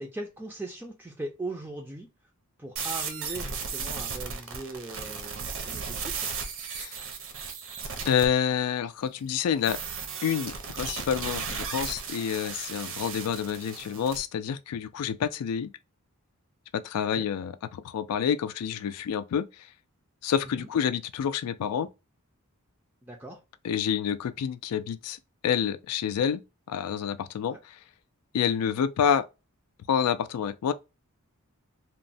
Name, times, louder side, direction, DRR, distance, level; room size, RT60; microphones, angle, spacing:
voice 1, 0.0-2.1 2.6-6.3 12.4-12.6 17.1-17.3 20.5-20.7 23.0-23.4 27.5-27.6, right 2 dB, 10° right, 0.3 m, -39 dB
sound 1, 2.8-8.3 9.6-14.2, right 5 dB, 60° right, 0.6 m, -35 dB
voice 2, 8.1-9.8 10.2-15.7 16.7-19.5 20.2-21.9 23.6-25.2 25.4-26.4 26.7-27.8 28.3-29.3 29.9-30.7, left 8 dB, 90° left, 0.3 m, -28 dB
3.0 x 2.0 x 2.5 m
head